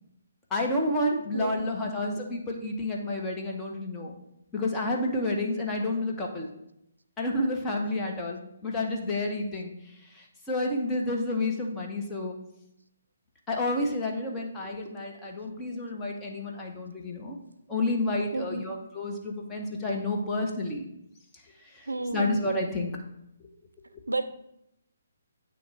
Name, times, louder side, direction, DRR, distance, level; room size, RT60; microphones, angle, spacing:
voice 1, 0.5-4.2 4.5-6.5 7.2-9.7 10.5-12.4 13.5-17.4 17.7-20.8 22.1-22.9, left 2 dB, 15° left, -1 dB, 1.0 m, -30 dB
voice 2, 1.3-2.0 18.3-18.8 21.9-22.3 24.1-24.2, right 2 dB, 85° right, 11 dB, 0.4 m, -32 dB
8.8 x 3.1 x 4.7 m, 0.82 s
figure-of-eight pair, 140°, 0 cm